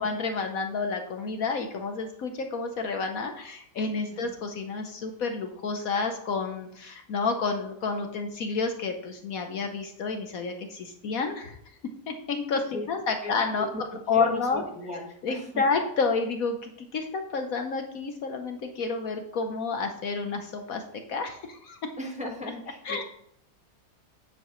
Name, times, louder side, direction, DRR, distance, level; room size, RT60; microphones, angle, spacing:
voice 1, 0.0-11.6 12.1-13.7 14.1-14.6 15.2-20.8 21.1-21.8 22.8-23.0, left 4 dB, 60° left, 5 dB, 1.2 m, -30 dB
voice 2, 13.7-15.6 22.0-23.0, left 1 dB, 5° right, -1 dB, 1.3 m, -37 dB
9.3 x 7.6 x 3.1 m, 0.70 s
omnidirectional pair, 1.8 m